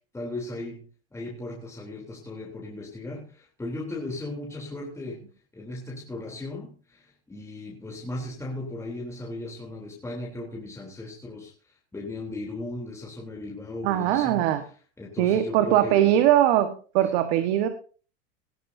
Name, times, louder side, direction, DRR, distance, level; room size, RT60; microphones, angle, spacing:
voice 1, 0.1-0.8 1.1-5.3 5.5-16.1 17.0-17.1, left 2 dB, 10° left, -3 dB, 3.4 m, -37 dB
voice 2, 13.8-14.6 15.2-17.7, right 12 dB, 65° right, 8 dB, 1.6 m, -21 dB
18.0 x 14.0 x 2.7 m, 0.40 s
supercardioid pair, 125°, 34 cm